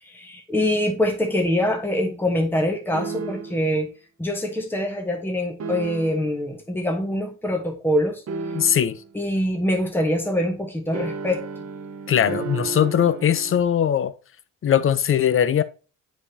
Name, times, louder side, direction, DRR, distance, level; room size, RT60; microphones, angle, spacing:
voice 1, 0.0-3.9 4.2-8.2 9.1-11.6, left 1 dB, 5° left, 1.2 m, -24 dB
sound 1, 2.9-3.7 5.6-6.4 8.3-9.1 10.9-13.6, right 5 dB, 55° right, 1.0 m, -33 dB
voice 2, 8.5-9.0 12.1-14.1 14.6-15.6, left 9 dB, 45° left, 0.7 m, -20 dB
7.4 x 5.1 x 2.8 m
cardioid pair, 90°, 30 cm